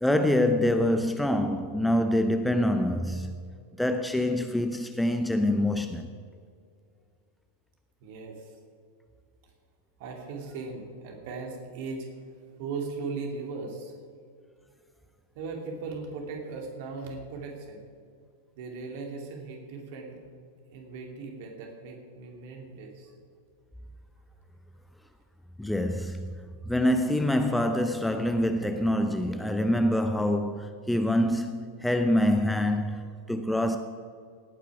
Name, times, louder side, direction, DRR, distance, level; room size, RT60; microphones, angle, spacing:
voice 1, 0.0-3.4 3.8-6.1 25.6-26.4 26.7-33.8, left 1 dB, 5° left, 0.6 m, -25 dB
voice 2, 8.0-8.5 10.0-12.1 12.6-13.9 15.3-17.9 18.6-20.2 20.7-23.1, right 4 dB, 50° right, 2.6 m, -38 dB
18.0 x 9.2 x 4.9 m
figure-of-eight pair, 90°, 0 cm